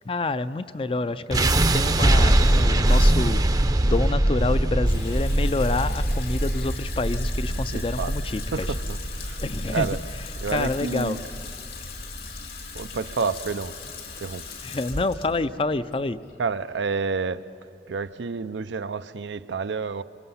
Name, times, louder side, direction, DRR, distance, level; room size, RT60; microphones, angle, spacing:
voice 1, 0.1-3.4 3.8-8.7 9.4-9.9 10.5-11.2 14.6-16.2, left 3 dB, 30° left, 0.4 m, -28 dB
sound 1, 1.3-13.4, right 1 dB, 20° right, 0.6 m, -23 dB
Water tap faucet / Sink (filling or washing), 4.8-17.2, left 4 dB, 70° left, 2.5 m, -40 dB
voice 2, 7.7-8.1 8.5-9.4 9.7-10.0 10.4-11.2 12.7-14.5 16.4-17.5 17.9-20.0, right 5 dB, 90° right, 0.6 m, -29 dB
26.0 x 25.0 x 5.6 m
head